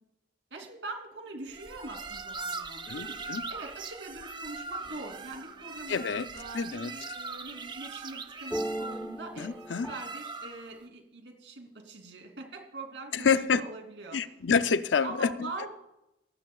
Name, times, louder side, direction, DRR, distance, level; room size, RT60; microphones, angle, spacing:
voice 1, 0.5-9.5 9.9-14.3 15.0-15.7, right 2 dB, 75° right, 3.1 m, -43 dB
sound 1, 1.5-10.8, right 4 dB, 25° right, 0.6 m, -41 dB
voice 2, 2.9-3.5 5.9-6.3 6.5-6.9 9.4-9.9 13.1-13.6 14.1-15.5, left 6 dB, 75° left, 0.5 m, -28 dB
sound 2, 4.8-5.4 8.5-10.0, right 1 dB, 5° left, 1.0 m, -37 dB
19.0 x 15.0 x 2.4 m
head